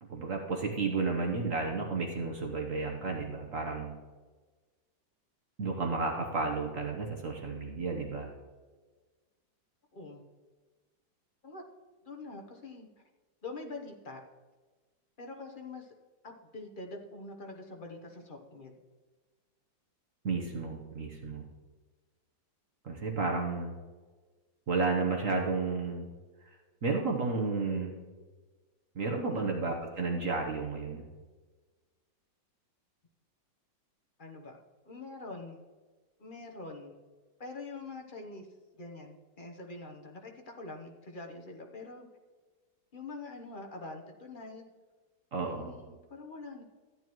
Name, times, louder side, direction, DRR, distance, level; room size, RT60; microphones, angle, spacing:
voice 1, 0.0-3.9 5.6-8.3 20.2-21.5 22.8-23.7 24.7-26.1 26.5-26.6 26.8-28.0 28.9-31.0 45.3-45.7, right 4 dB, 50° right, 1 dB, 1.2 m, -32 dB
voice 2, 12.0-12.9 13.4-14.2 15.2-15.9 16.2-18.8 29.2-29.6 34.2-34.6 34.9-35.6 36.2-37.0 37.4-38.5 38.7-42.1 42.9-44.6 45.4-46.6, left 3 dB, 35° left, 2 dB, 0.9 m, -45 dB
13.5 x 9.5 x 3.1 m, 1.4 s
omnidirectional pair, 2.0 m